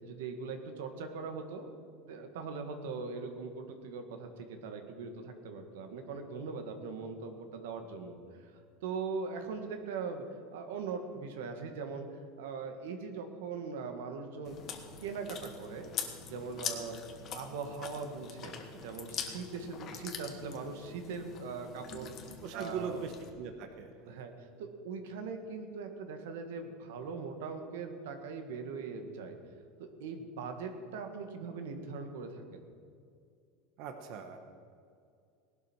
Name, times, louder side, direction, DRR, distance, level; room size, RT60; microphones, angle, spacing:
voice 1, 0.0-1.7 2.0-8.5 8.8-10.2 10.5-12.1 12.4-14.6 15.0-15.9 16.2-17.0 17.3-18.5 18.8-22.1 22.5-23.0 24.0-29.4 29.8-32.6, right 5 dB, 90° right, 6 dB, 1.9 m, -41 dB
Chewing mastication, 14.4-23.3, left 7 dB, 30° left, 1.3 m, -43 dB
voice 2, 22.4-24.1 33.8-34.4, right 6 dB, 45° right, 6 dB, 1.1 m, -40 dB
18.5 x 12.0 x 4.6 m, 2.4 s
supercardioid pair, 170°, 0 cm